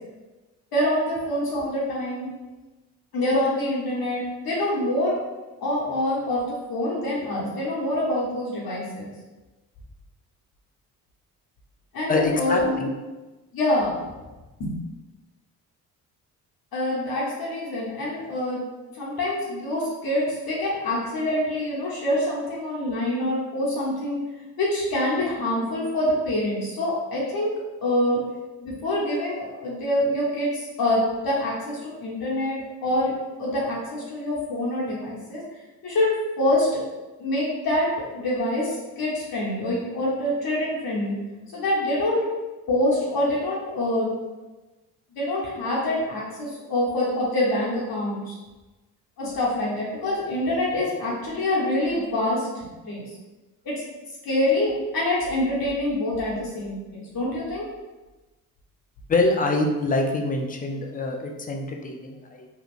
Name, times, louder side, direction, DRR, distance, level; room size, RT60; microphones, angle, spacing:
voice 1, 0.7-2.3 3.1-5.2 5.6-9.1 11.9-12.8 13.5-14.0 14.6-14.7 16.7-18.6 19.0-24.2 24.6-27.5 27.8-28.2 28.6-32.5 32.8-33.1 33.4-35.4 35.8-36.7 37.2-41.2 41.5-42.2 42.7-44.1 45.1-48.4 49.2-53.1 53.6-53.8 54.2-57.6, left 1 dB, 55° left, -6 dB, 1.1 m, -25 dB
voice 2, 12.1-12.9 59.1-62.5, left 2 dB, 20° left, 3 dB, 0.5 m, -25 dB
3.5 x 2.3 x 2.5 m, 1.1 s
hypercardioid pair, 50°, 43 cm